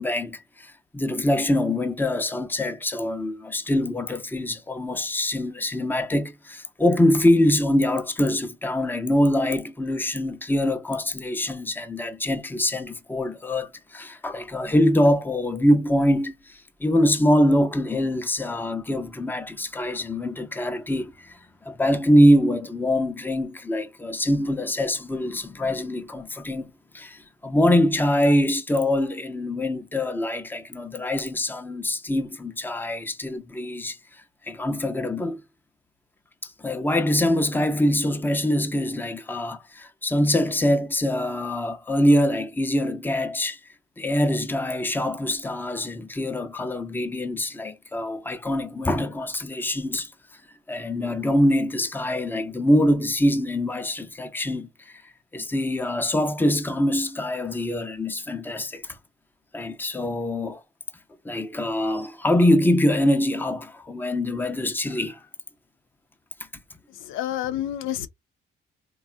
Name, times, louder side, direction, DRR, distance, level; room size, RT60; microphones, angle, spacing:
voice 1, 0.0-21.4 21.7-34.0 34.4-35.4 36.4-43.6 44.0-50.1 50.7-54.7 55.3-58.9 59.5-60.6 61.2-65.2, left 1 dB, 10° left, 0.6 m, -24 dB
voice 2, 66.9-68.1, left 12 dB, 90° left, 0.5 m, -29 dB
3.6 x 2.3 x 2.4 m
cardioid pair, 90°, 20 cm